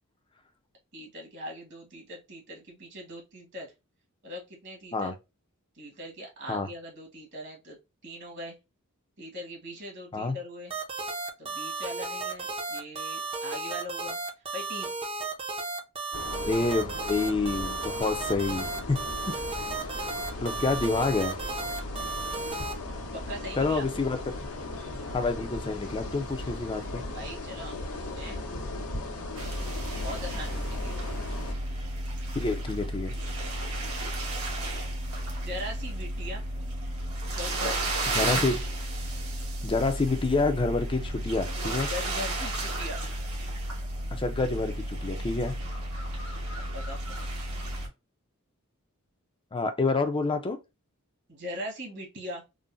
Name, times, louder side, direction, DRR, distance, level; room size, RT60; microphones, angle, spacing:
voice 1, 0.9-3.7 4.2-5.1 5.7-8.6 9.2-10.7 11.4-14.2 14.5-14.9 23.1-23.9 26.4-26.5 27.0-28.5 30.0-31.0 35.4-36.4 37.3-38.3 41.9-43.0 46.7-47.3 51.3-52.4, equal, 55° right, 1.4 m, -40 dB
sound 1, 10.7-22.7, right 3 dB, 25° right, 0.6 m, -34 dB
sound 2, 16.1-31.5, left 2 dB, 85° left, 1.0 m, -37 dB
voice 2, 16.5-19.0 20.4-21.3 23.6-24.2 25.1-27.0 32.3-33.1 38.1-38.6 39.6-41.9 44.1-45.5 49.5-50.6, left 3 dB, 25° left, 0.4 m, -28 dB
sound 3, 29.4-47.9, right 1 dB, 75° right, 1.2 m, -33 dB
3.8 x 2.1 x 2.5 m
head